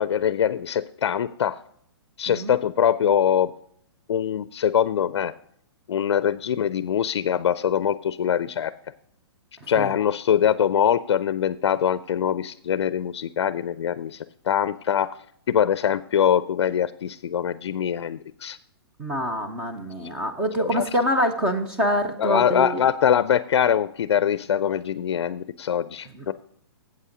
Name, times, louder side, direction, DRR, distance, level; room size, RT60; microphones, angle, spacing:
voice 1, 0.0-1.6 2.2-3.5 4.1-5.3 5.9-8.7 9.7-14.2 14.5-15.1 15.5-18.6 20.6-20.8 22.2-26.3, left 9 dB, 85° left, 15 dB, 0.4 m, -23 dB
voice 2, 19.0-22.8 26.1-26.3, equal, 5° right, 5 dB, 0.3 m, -25 dB
8.3 x 7.8 x 5.0 m, 0.66 s
hypercardioid pair, 170°, 14 cm